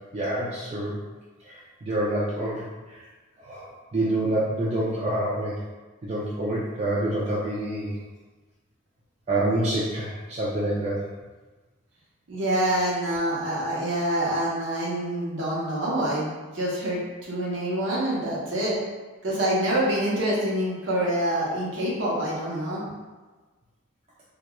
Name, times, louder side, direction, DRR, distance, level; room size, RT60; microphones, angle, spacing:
voice 1, 0.1-1.0 1.5-2.6 3.4-5.6 6.0-8.0 9.3-11.0, right 1 dB, 30° right, -7 dB, 0.3 m, -27 dB
voice 2, 12.3-18.8 19.2-22.8, right 1 dB, 60° right, -6 dB, 0.8 m, -26 dB
2.9 x 2.2 x 2.2 m, 1.3 s
head